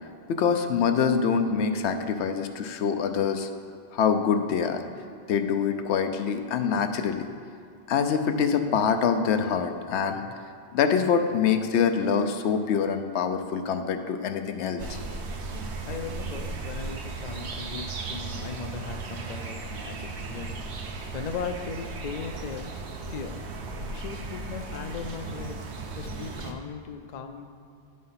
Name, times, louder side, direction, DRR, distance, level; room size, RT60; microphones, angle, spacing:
voice 1, 0.3-3.5 3.9-4.8 5.3-7.3 7.9-10.2 10.7-15.0, left 6 dB, 80° left, 7 dB, 0.9 m, -25 dB
sound 1, 14.8-26.5, right 4 dB, 75° right, 1.0 m, -36 dB
voice 2, 15.5-22.8 23.1-23.4 23.7-25.6 26.0-27.5, left 6 dB, 55° left, 7 dB, 0.5 m, -38 dB
9.7 x 4.2 x 5.6 m, 2.5 s
omnidirectional pair, 1.1 m